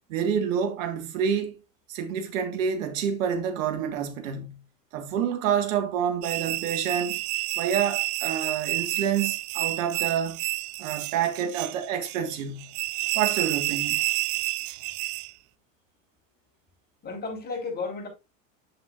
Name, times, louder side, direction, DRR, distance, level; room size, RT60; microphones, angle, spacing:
voice 1, 0.1-1.6 1.9-4.6 4.9-7.2 7.6-10.4 10.8-12.7 13.1-14.0, right 8 dB, 75° right, 1.7 m, -28 dB
sound 1, 6.2-15.3, right 21 dB, 50° right, 0.4 m, -30 dB
voice 2, 17.0-18.1, left 4 dB, 25° left, 4.3 m, -34 dB
7.6 x 7.5 x 2.4 m
hypercardioid pair, 95°, 39 cm